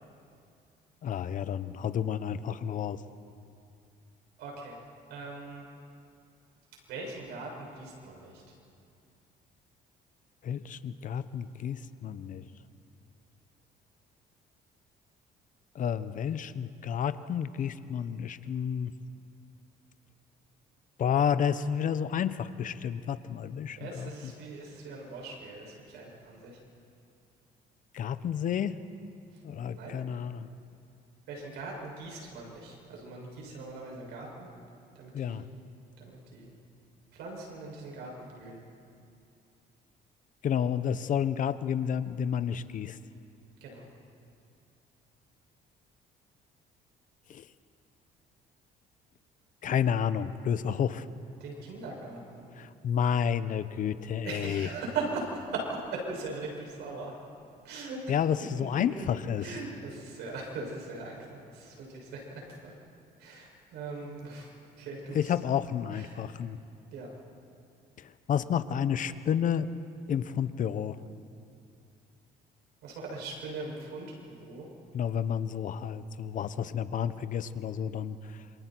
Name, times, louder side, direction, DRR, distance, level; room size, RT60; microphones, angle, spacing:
voice 1, 1.0-3.0 10.4-12.4 15.7-18.9 21.0-24.3 27.9-28.8 29.4-30.5 35.1-35.5 40.4-43.0 47.3-47.5 49.6-51.1 52.5-54.7 58.1-59.5 65.1-66.6 68.0-69.7 70.1-71.0 74.9-78.4, left 8 dB, 50° left, 13 dB, 0.9 m, -30 dB
voice 2, 4.4-4.8 5.1-5.6 6.9-8.3 23.8-26.6 29.7-30.0 31.3-34.5 35.0-35.4 36.0-36.5 37.1-38.6 43.6-43.9 51.4-52.5 54.2-57.1 57.6-58.0 58.6-59.1 59.4-62.7 63.2-64.5 64.8-65.2 66.0-66.2 66.9-67.1 72.8-74.7, right 3 dB, 80° right, -1 dB, 7.0 m, -40 dB
27.5 x 27.0 x 4.6 m, 2.5 s
cardioid pair, 110°, 17 cm